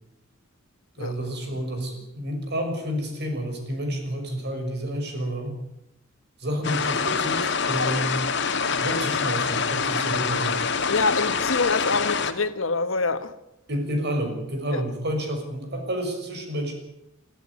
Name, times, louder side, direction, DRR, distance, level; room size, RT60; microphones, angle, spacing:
voice 1, 1.0-5.6 6.4-8.2 8.8-10.6 13.7-16.7, equal, 55° right, 6.3 m, -29 dB
sound 1, 6.6-12.3, left 5 dB, 60° left, 1.9 m, -25 dB
voice 2, 10.9-13.3 14.7-14.8, left 3 dB, 80° left, 1.5 m, -25 dB
22.5 x 13.5 x 9.7 m
head